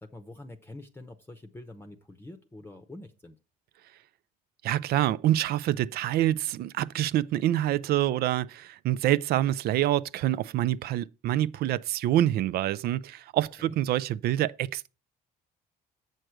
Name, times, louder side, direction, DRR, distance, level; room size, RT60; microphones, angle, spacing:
voice 1, 0.0-3.4 13.6-13.8, left 2 dB, 15° left, 0.8 m, -46 dB
voice 2, 4.6-14.9, right 13 dB, 65° right, 0.4 m, -26 dB
7.8 x 6.4 x 4.5 m
cardioid pair, 110°, 17 cm